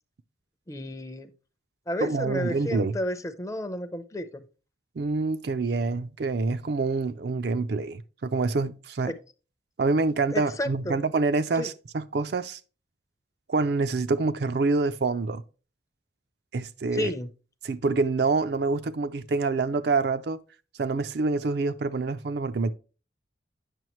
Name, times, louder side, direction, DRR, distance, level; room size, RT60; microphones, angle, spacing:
voice 1, 0.7-1.3 1.9-4.4 9.1-9.2 10.3-11.0 11.5-11.7 16.9-17.3, left 1 dB, 15° left, 0.5 m, -32 dB
voice 2, 2.0-2.9 5.0-9.1 9.8-12.6 13.5-15.4 16.5-17.1 17.6-20.4 20.8-22.7, right 3 dB, 60° right, 0.4 m, -26 dB
9.1 x 6.4 x 3.0 m
head